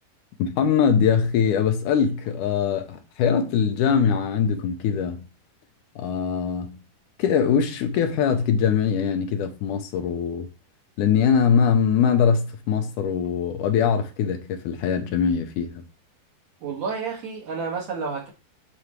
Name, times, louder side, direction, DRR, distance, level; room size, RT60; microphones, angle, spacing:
voice 1, 0.4-5.2 6.0-6.8 7.2-10.5 11.0-15.8, left 7 dB, 75° left, 2.2 m, -22 dB
voice 2, 16.6-18.3, right 5 dB, 60° right, 2.7 m, -30 dB
11.5 x 4.0 x 3.1 m
omnidirectional pair, 3.9 m